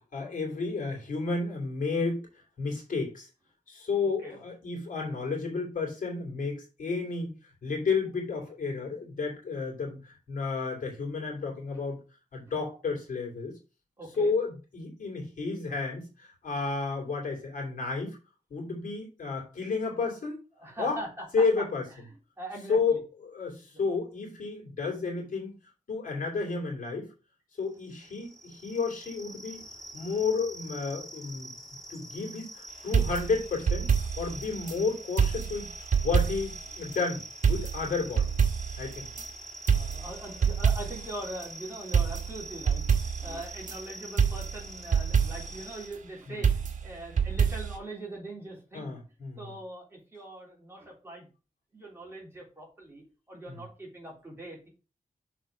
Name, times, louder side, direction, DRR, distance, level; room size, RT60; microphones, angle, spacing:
voice 1, 0.1-2.2 2.6-3.3 3.7-7.3 7.6-12.0 12.3-13.5 14.2-18.2 18.5-20.4 20.8-21.0 21.3-21.8 22.7-23.0 23.2-25.5 25.9-27.1 27.6-29.6 29.9-31.5 31.9-33.9 34.2-35.7 36.0-37.2 37.4-38.2 38.8-39.1 46.3-46.4 48.7-49.4 53.5-53.6, left 4 dB, 70° left, 0 dB, 3.1 m, -31 dB
voice 2, 4.0-4.4 11.7-11.8 14.0-14.3 20.5-21.6 21.9-22.0 22.4-23.0 23.5-23.8 39.7-49.0 49.4-51.3 51.7-54.7, right 1 dB, 15° right, -3 dB, 3.4 m, -42 dB
sound 1, 27.7-45.9, right 1 dB, 5° left, 1.7 m, -45 dB
sound 2, 32.9-34.8 35.2-36.7 36.9-37.0 37.4-39.3 39.7-41.2 41.4-41.5 41.9-43.8 44.2-45.6 46.4-47.8, right 6 dB, 65° right, 1.1 m, -27 dB
6.5 x 4.3 x 5.2 m, 0.33 s
wide cardioid pair, 110°, 14 cm